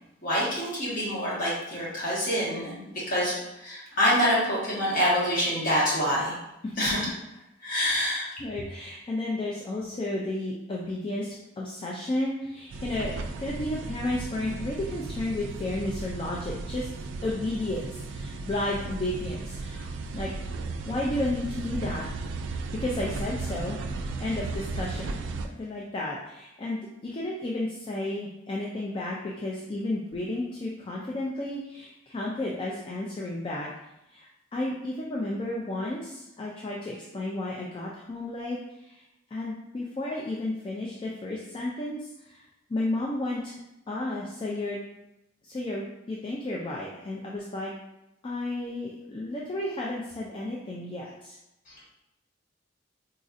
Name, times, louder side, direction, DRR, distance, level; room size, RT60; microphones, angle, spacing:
voice 1, 0.2-2.8 3.1-6.3 6.8-7.1 7.6-8.3, equal, 50° left, -7 dB, 1.4 m, -26 dB
voice 2, 8.4-13.1 13.4-16.9 17.2-20.3 20.8-22.1 22.8-23.8 24.2-25.2 25.6-33.7 34.1-39.0 39.3-42.4 42.7-43.5 43.9-44.8 45.4-47.7 48.2-51.4, left 1 dB, 30° left, -3 dB, 0.4 m, -32 dB
sound 1, 12.7-25.5, right 3 dB, 80° right, 0.3 m, -35 dB
4.0 x 2.6 x 2.5 m, 0.90 s
head